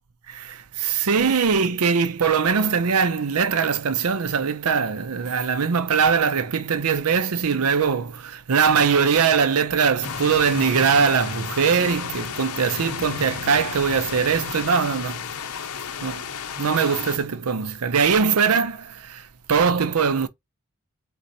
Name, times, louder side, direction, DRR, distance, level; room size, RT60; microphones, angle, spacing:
voice 1, 0.3-15.2 16.0-16.3 16.6-20.3, right 6 dB, 85° right, 0.6 m, -21 dB
sound 1, 10.0-17.2, left 6 dB, 85° left, 0.8 m, -33 dB
4.2 x 4.0 x 2.7 m
head